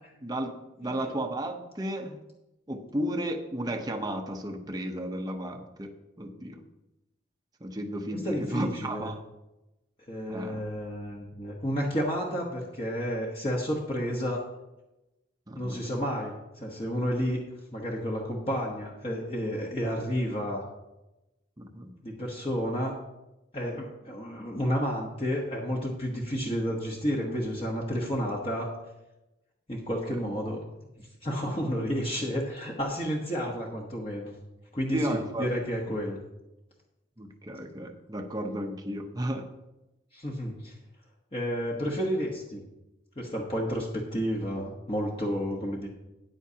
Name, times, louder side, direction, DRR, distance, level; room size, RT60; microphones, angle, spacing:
voice 1, 0.2-2.2 2.7-6.6 7.6-9.2 10.3-10.6 15.5-15.8 21.6-21.9 30.1-30.2 34.9-35.5 37.2-39.5, right 1 dB, 20° right, 3 dB, 0.8 m, -33 dB
voice 2, 8.1-9.1 10.1-14.5 15.5-17.4 17.7-20.7 22.0-22.9 23.5-28.7 29.7-30.6 31.0-34.3 34.7-36.2 40.1-40.7 41.3-42.6 43.2-45.9, equal, 30° left, -2 dB, 1.2 m, -31 dB
13.0 x 9.7 x 2.8 m, 0.97 s
head